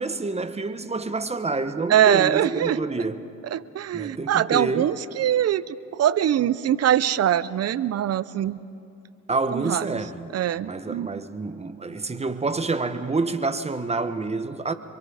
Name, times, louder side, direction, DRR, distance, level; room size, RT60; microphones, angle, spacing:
voice 1, 0.0-3.2 3.9-5.0 9.3-10.3 10.6-14.7, right 3 dB, 20° right, 1.1 m, -28 dB
voice 2, 1.9-2.8 3.5-8.6 9.5-10.0 10.3-11.2, right 11 dB, 55° right, 0.6 m, -23 dB
26.0 x 23.0 x 4.9 m
cardioid pair, 90°, 30 cm